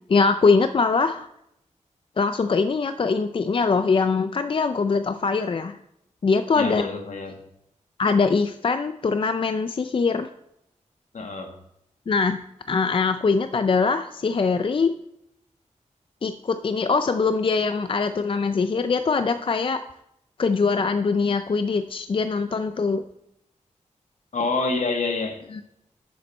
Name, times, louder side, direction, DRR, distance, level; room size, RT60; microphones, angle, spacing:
voice 1, 0.1-1.3 2.2-5.8 6.2-6.9 8.0-10.3 12.1-12.4 12.7-14.9 16.2-19.8 20.4-23.0 25.5-25.6, left 4 dB, 45° left, 0.4 m, -22 dB
voice 2, 6.5-7.4 11.1-11.5 24.3-25.6, left 3 dB, 70° left, 1.6 m, -27 dB
10.5 x 7.2 x 4.3 m
wide cardioid pair, 120°, 13 cm